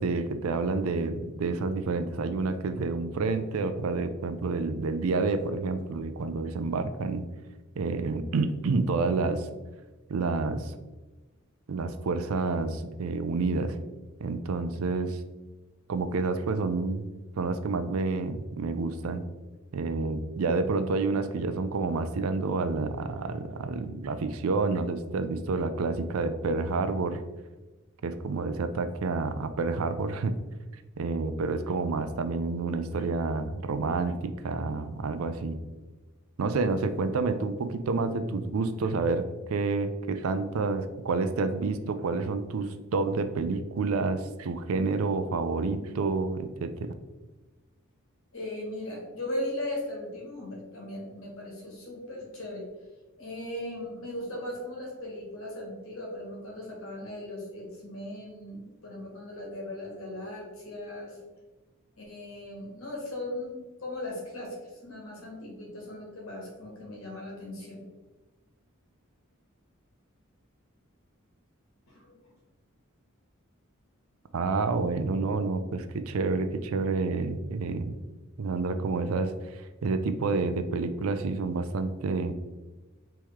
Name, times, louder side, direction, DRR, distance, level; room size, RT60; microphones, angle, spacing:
voice 1, 0.0-7.3 7.8-9.5 10.1-10.8 11.7-13.8 14.2-15.2 15.9-17.1 17.4-19.3 19.7-27.2 28.0-30.4 31.0-35.6 36.4-46.9 74.3-78.0 78.4-82.3, right 3 dB, 75° right, 10 dB, 0.4 m, -29 dB
voice 2, 48.3-52.7 53.2-61.2 61.9-64.5 64.8-67.8 71.9-72.3, left 1 dB, 75° left, -1 dB, 1.5 m, -38 dB
4.6 x 3.1 x 3.5 m, 1.2 s
head